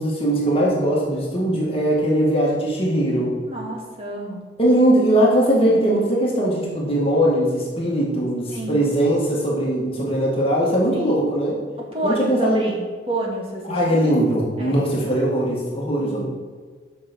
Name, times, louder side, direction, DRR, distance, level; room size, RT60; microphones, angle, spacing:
voice 1, 0.0-3.4 4.6-11.6 12.0-12.7 13.7-16.2, right 1 dB, 30° left, -3 dB, 1.9 m, -20 dB
voice 2, 3.5-4.4 8.5-8.8 10.9-11.2 11.9-14.0 14.6-14.8 16.0-16.2, right 1 dB, 30° right, -2 dB, 1.9 m, -29 dB
7.0 x 5.9 x 6.9 m, 1.5 s
head